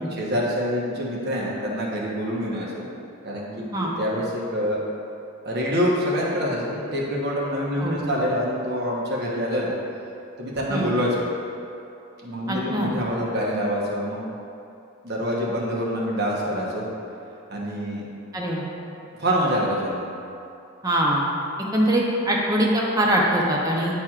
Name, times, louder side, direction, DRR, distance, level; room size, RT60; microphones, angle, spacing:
voice 1, 0.0-2.8 3.2-3.5 3.8-4.8 5.4-9.7 10.4-11.2 12.2-14.3 15.0-16.8 17.5-18.1 19.2-20.0, equal, 50° right, -4 dB, 1.1 m, -26 dB
voice 2, 7.8-8.2 10.7-10.9 12.5-12.9 18.3-18.7 20.8-21.3 21.7-23.9, right 1 dB, 20° right, -3 dB, 0.8 m, -23 dB
10.0 x 4.4 x 2.4 m, 2.7 s
head